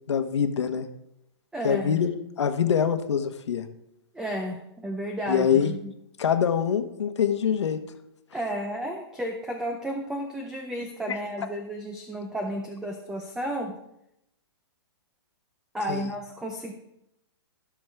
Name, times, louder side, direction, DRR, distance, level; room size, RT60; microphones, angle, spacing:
voice 1, 0.1-0.9 1.6-2.1 2.4-3.6 5.3-5.7 6.2-7.8 11.1-11.2 15.9-16.1, left 8 dB, 80° left, 8 dB, 1.2 m, -24 dB
voice 2, 1.5-2.0 4.1-5.9 8.3-13.7 15.7-16.7, equal, 5° right, 3 dB, 0.6 m, -32 dB
16.0 x 6.2 x 3.5 m, 0.83 s
hypercardioid pair, 155°, 14 cm